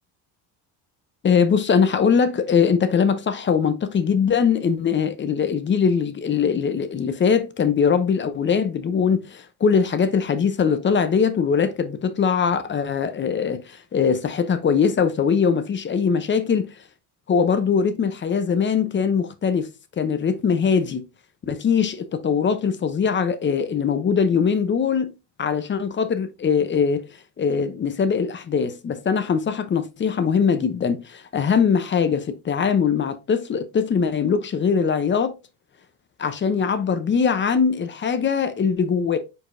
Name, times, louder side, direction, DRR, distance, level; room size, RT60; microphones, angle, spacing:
voice 1, 1.2-16.7 17.3-19.7 20.0-21.1 21.4-25.1 25.4-27.1 27.4-35.4 36.2-39.2, left 6 dB, 25° left, 0.6 m, -21 dB
4.8 x 4.4 x 2.5 m
cardioid pair, 120°, 44 cm